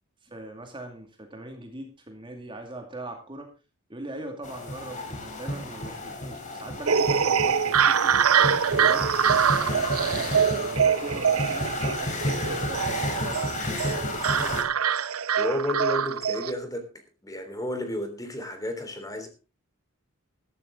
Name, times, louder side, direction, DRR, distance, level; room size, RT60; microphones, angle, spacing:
voice 1, 0.2-3.5 3.9-8.2 8.7-9.2 9.5-13.8, right 2 dB, 25° right, 4 dB, 2.3 m, -41 dB
sound 1, 4.4-14.6, left 1 dB, 35° left, 3.7 m, -32 dB
sound 2, 6.9-16.5, right 7 dB, 80° right, 0.8 m, -24 dB
voice 2, 15.4-16.9 17.2-19.3, left 1 dB, 15° left, 7 dB, 3.3 m, -31 dB
14.0 x 13.5 x 3.8 m, 0.31 s
head